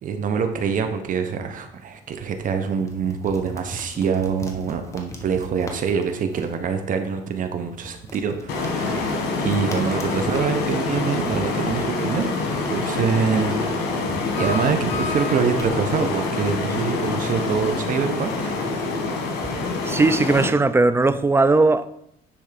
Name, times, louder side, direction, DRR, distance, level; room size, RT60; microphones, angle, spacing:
voice 1, 0.0-12.3 12.7-13.5 14.4-18.6, right 6 dB, 50° right, 0.9 m, -25 dB
sound 1, 1.7-19.9, left 1 dB, 15° left, 1.3 m, -42 dB
sound 2, 8.5-20.5, left 3 dB, 80° left, 1.8 m, -26 dB
sound 3, 14.3-15.7, left 4 dB, 35° left, 2.6 m, -31 dB
voice 2, 19.6-21.9, right 3 dB, 15° right, 0.4 m, -18 dB
9.9 x 3.5 x 5.1 m
cardioid pair, 110°, 17 cm